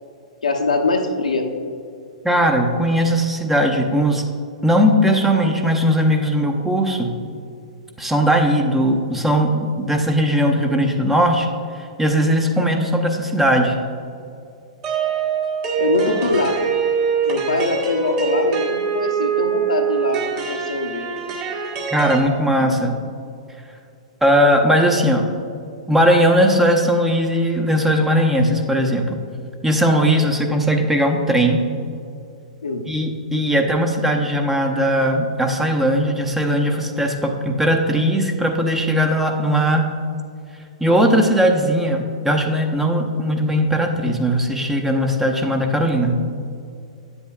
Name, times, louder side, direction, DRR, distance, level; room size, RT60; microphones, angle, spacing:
voice 1, 0.4-1.5 15.8-16.6 17.3-21.1 32.6-32.8, left 2 dB, 85° left, 3 dB, 0.8 m, -22 dB
voice 2, 2.2-4.2 4.6-7.2 8.0-11.5 11.7-13.8 21.9-23.0 24.2-25.3 25.9-29.2 29.6-31.6 32.9-39.9 40.8-46.2, equal, 5° right, 2 dB, 0.7 m, -18 dB
sound 1, 14.8-22.2, right 6 dB, 40° right, 1.5 m, -23 dB
9.3 x 7.9 x 2.4 m, 2.4 s
hypercardioid pair, 115°, 4 cm